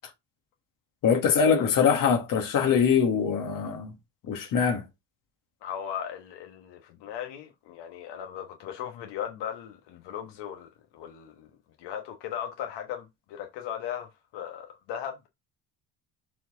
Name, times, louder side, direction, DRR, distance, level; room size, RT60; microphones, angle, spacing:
voice 1, 1.0-3.9 4.3-4.8, left 6 dB, 50° left, 2.0 m, -23 dB
voice 2, 5.6-11.5 11.8-15.3, left 9 dB, 70° left, 1.3 m, -37 dB
7.0 x 4.5 x 3.9 m
cardioid pair, 160°, 43 cm